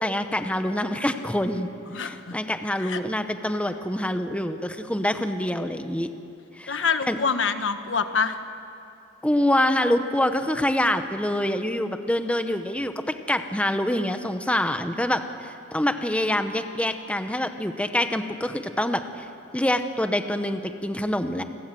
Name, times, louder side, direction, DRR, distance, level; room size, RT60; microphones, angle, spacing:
voice 1, 0.0-6.1 6.6-7.2 9.2-19.3 19.5-21.4, left 1 dB, 5° left, 8 dB, 1.0 m, -26 dB
voice 2, 1.9-2.3 2.8-3.0 6.7-8.4, left 5 dB, 85° left, 9 dB, 1.3 m, -26 dB
29.0 x 21.0 x 7.7 m, 2.6 s
head